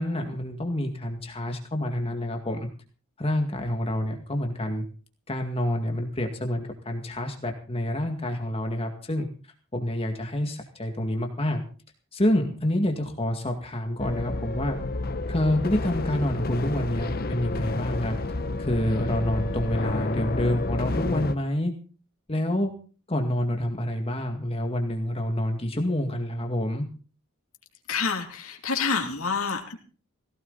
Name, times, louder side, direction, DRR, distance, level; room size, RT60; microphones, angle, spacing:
voice 1, 0.0-2.7 3.2-4.8 5.3-9.3 9.7-11.6 12.1-14.8 15.3-18.2 18.6-21.7 22.3-22.7 23.1-26.9, left 1 dB, 25° left, 4 dB, 2.1 m, -27 dB
sound 1, 14.0-21.4, left 2 dB, 45° left, 0.9 m, -30 dB
voice 2, 27.9-29.8, left 5 dB, 75° left, 1 dB, 2.8 m, -28 dB
18.5 x 17.0 x 4.1 m, 0.37 s
head